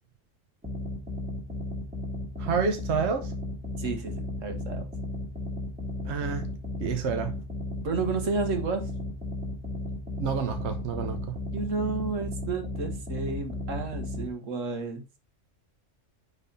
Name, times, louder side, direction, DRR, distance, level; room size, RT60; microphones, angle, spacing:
sound 1, 0.6-14.3, left 1 dB, 5° right, 1.9 m, -35 dB
voice 1, 2.4-3.3 6.0-6.5 6.8-7.3 10.2-11.4, right 6 dB, 65° right, 1.2 m, -29 dB
voice 2, 3.8-4.9 7.8-8.9 11.5-15.0, right 4 dB, 85° right, 1.9 m, -31 dB
9.6 x 4.1 x 3.9 m
omnidirectional pair, 1.3 m